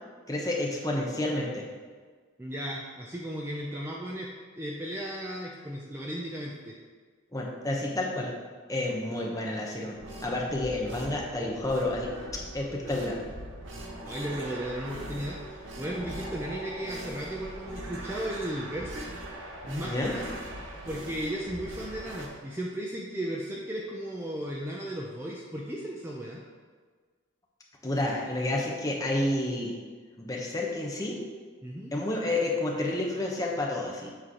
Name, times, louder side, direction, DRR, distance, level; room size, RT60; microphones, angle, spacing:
voice 1, 0.3-1.6 7.3-8.3 8.7-12.1 12.5-13.2 19.8-20.2 27.8-29.8 30.2-31.2 31.9-34.1, left 1 dB, 15° left, -2 dB, 0.8 m, -30 dB
voice 2, 2.4-4.3 4.6-6.8 8.9-9.0 14.0-20.4 20.8-26.4 31.6-31.9, equal, 10° right, -3 dB, 0.5 m, -35 dB
sound 1, 9.9-22.3, right 1 dB, 65° right, 1.0 m, -41 dB
7.5 x 3.2 x 5.7 m, 1.5 s
head